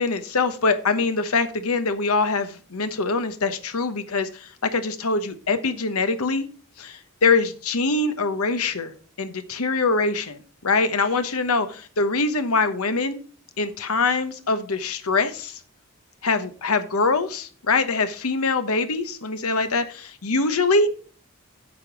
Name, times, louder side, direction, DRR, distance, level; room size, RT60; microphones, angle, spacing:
voice 1, 0.0-6.5 6.8-8.9 9.2-13.2 13.6-15.6 16.2-20.9, left 3 dB, 80° left, 10 dB, 1.1 m, -23 dB
8.8 x 5.3 x 6.1 m, 0.40 s
head